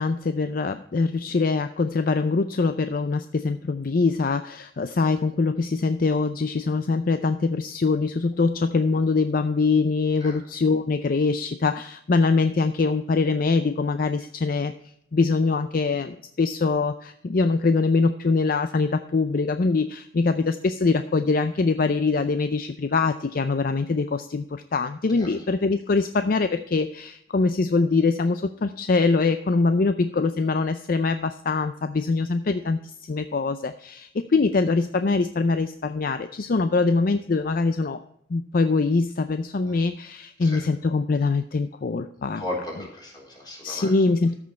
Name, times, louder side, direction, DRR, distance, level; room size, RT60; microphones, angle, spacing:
voice 1, 0.0-14.7 15.1-38.0 38.3-42.4 43.6-44.3, left 4 dB, 50° left, 10 dB, 0.5 m, -23 dB
voice 2, 42.4-43.9, left 1 dB, 25° left, -3 dB, 4.0 m, -35 dB
13.5 x 6.2 x 4.3 m, 0.73 s
head